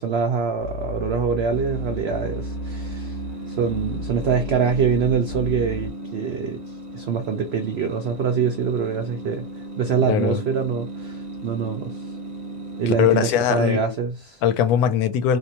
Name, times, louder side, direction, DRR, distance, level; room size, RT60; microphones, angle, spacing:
voice 1, 0.0-3.2 3.5-6.6 6.9-12.1 12.8-14.4, right 6 dB, 75° right, 0.5 m, -24 dB
sound 1, 0.6-5.9, equal, 35° left, 0.4 m, -33 dB
Fan on timer bathroom, 1.5-13.9, right 1 dB, 35° right, 0.7 m, -36 dB
voice 2, 10.1-10.4 12.9-13.8 14.4-15.4, left 9 dB, 75° left, 1.0 m, -20 dB
3.6 x 2.5 x 2.7 m
omnidirectional pair, 1.7 m